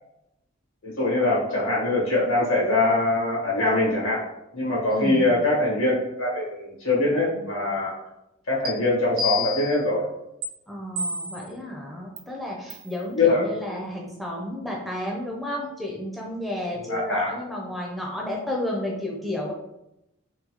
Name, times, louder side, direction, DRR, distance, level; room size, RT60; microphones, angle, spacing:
voice 1, 0.8-4.2 4.5-7.9 8.5-10.0 13.1-13.4 16.9-17.3, left 2 dB, 85° left, -5 dB, 1.5 m, -23 dB
voice 2, 4.9-5.3 10.7-19.5, left 1 dB, ahead, -2 dB, 0.4 m, -32 dB
sound 1, 8.7-8.8 9.2-9.8 10.4-10.5 11.0-11.5 12.2-12.3 12.7-12.9, left 3 dB, 90° right, 0.6 m, -29 dB
3.7 x 2.2 x 2.8 m, 0.87 s
head